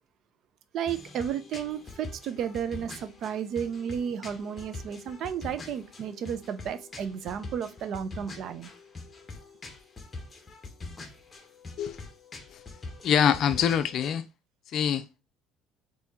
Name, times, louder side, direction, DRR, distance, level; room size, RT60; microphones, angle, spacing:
voice 1, 0.7-8.7, right 8 dB, 50° right, 0.5 m, -33 dB
sound 1, 0.9-14.1, left 3 dB, 20° left, 0.9 m, -44 dB
voice 2, 13.0-14.2 14.7-15.0, left 8 dB, 50° left, 0.5 m, -24 dB
4.2 x 2.8 x 3.5 m
cardioid pair, 130°, 0 cm